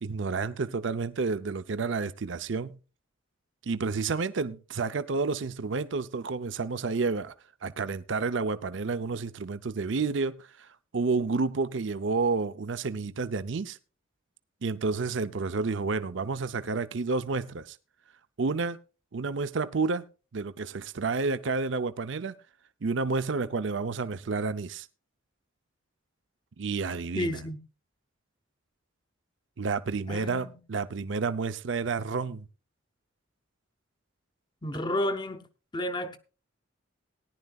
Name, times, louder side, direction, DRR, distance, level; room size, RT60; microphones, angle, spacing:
voice 1, 0.0-2.8 3.6-7.3 7.6-13.8 14.6-17.8 18.4-18.8 19.1-20.0 20.3-22.4 22.8-24.9 26.6-27.4 29.6-32.4, right 4 dB, 65° right, 0.6 m, -30 dB
voice 2, 27.1-27.6 30.1-30.6 34.6-35.4 35.7-36.2, left 1 dB, 20° left, 0.8 m, -31 dB
18.0 x 10.5 x 2.3 m
head